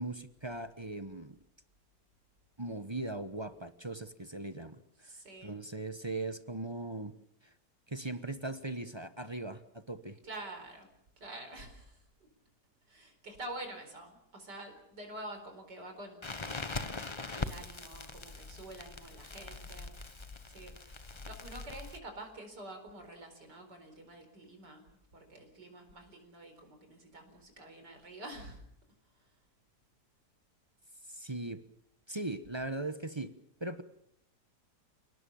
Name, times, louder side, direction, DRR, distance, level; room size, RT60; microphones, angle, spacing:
voice 1, 0.0-1.4 2.6-5.1 5.4-7.1 7.4-7.5 7.9-10.2 31.1-31.6 32.1-33.3 33.6-33.8, right 2 dB, 20° right, 10 dB, 0.9 m, -39 dB
voice 2, 5.0-5.6 10.2-10.9 11.2-12.3 12.9-21.0 21.3-28.6 29.2-29.3, right 1 dB, 80° right, 5 dB, 5.1 m, -48 dB
Crackle, 16.2-22.0, left 3 dB, 25° left, 0.8 m, -42 dB
29.5 x 18.5 x 7.1 m, 0.76 s
omnidirectional pair, 1.8 m